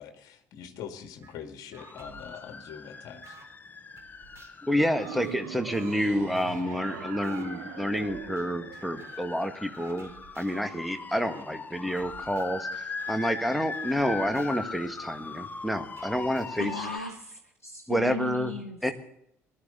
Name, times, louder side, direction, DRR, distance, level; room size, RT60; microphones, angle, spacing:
voice 1, 0.0-3.3, left 8 dB, 55° left, 6 dB, 2.2 m, -43 dB
sound 1, 1.2-1.4 1.7-3.5 4.0-6.8 7.2-7.5 8.0-8.5 8.7-9.3 9.7-10.7 11.2-11.5 12.0-15.4 16.0-17.2, right 4 dB, 35° right, 3.7 m, -54 dB
sound 2, 1.8-17.0, left 4 dB, 25° left, 0.9 m, -41 dB
voice 2, 4.6-10.1 10.4-16.9 17.9-18.5 18.8-18.9, equal, ahead, 7 dB, 1.9 m, -29 dB
sound 3, 5.0-9.5, right 17 dB, 70° right, 0.6 m, -41 dB
voice 3, 16.6-18.9, left 2 dB, 90° left, 1 dB, 1.1 m, -37 dB
20.0 x 12.5 x 4.1 m, 0.71 s
figure-of-eight pair, 55°, 8 cm